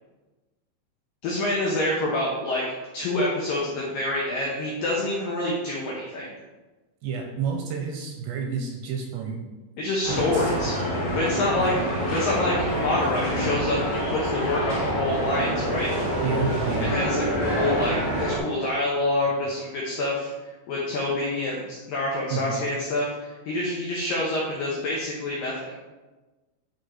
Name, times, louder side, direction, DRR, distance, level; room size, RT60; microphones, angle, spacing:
voice 1, 1.2-2.7 2.9-6.3 9.8-10.7 11.1-11.7 12.1-15.9 16.8-20.3 20.7-25.7, left 1 dB, 90° left, -3 dB, 2.0 m, -27 dB
voice 2, 7.0-9.4 10.1-10.6 11.4-11.7 16.2-16.9 22.3-22.6, right 5 dB, 80° right, 1 dB, 2.5 m, -30 dB
sound 1, 10.0-18.4, equal, 50° left, 2.7 m, -26 dB
10.5 x 3.8 x 4.3 m, 1.2 s
omnidirectional pair, 5.4 m